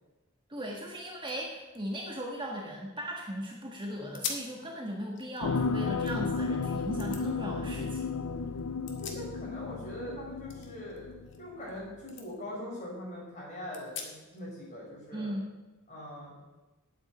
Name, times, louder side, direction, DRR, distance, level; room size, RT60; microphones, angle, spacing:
voice 1, 0.5-8.1 15.1-15.5, equal, 20° right, -1 dB, 1.4 m, -38 dB
sound 1, 0.7-0.8 1.0-3.2 3.6-3.7 4.1-4.6 5.0-6.4 7.0-7.2 8.6-9.7 10.0-11.8 12.1-12.3 12.8-12.9 13.7-14.4, left 6 dB, 55° left, 1.8 m, -43 dB
sound 2, 5.4-11.5 11.9-12.0, left 4 dB, 90° left, 0.6 m, -33 dB
voice 2, 9.0-11.1 11.4-15.3 15.9-16.3, left 1 dB, 35° left, -4 dB, 5.4 m, -42 dB
9.0 x 8.1 x 9.1 m, 1.1 s
head